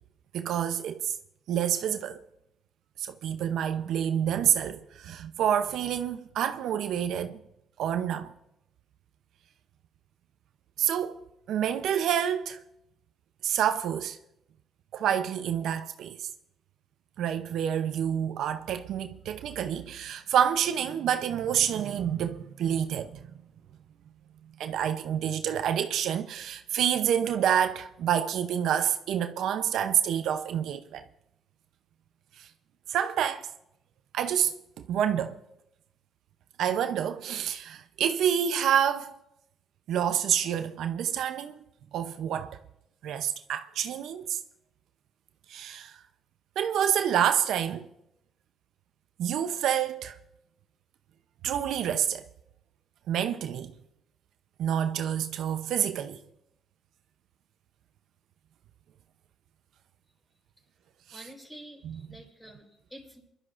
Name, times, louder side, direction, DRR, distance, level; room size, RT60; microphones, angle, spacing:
voice 1, 0.3-1.2 1.5-2.2 3.0-7.4 7.8-8.3 10.8-11.2 11.5-12.6 13.4-14.2 14.9-16.2 17.2-23.2 24.6-31.0 32.4-32.5 32.9-33.5 34.1-35.4 36.6-39.2 39.9-41.6 41.9-42.6 43.0-44.4 45.5-46.0 46.6-47.9 49.2-50.2 51.4-52.2 53.1-53.7 54.6-56.2 61.1-61.2 61.8-62.0, right 9 dB, 80° right, 0.6 m, -28 dB
voice 2, 61.1-63.2, equal, 10° left, 4.5 m, -48 dB
28.5 x 12.0 x 2.5 m
cardioid pair, 90°, 0 cm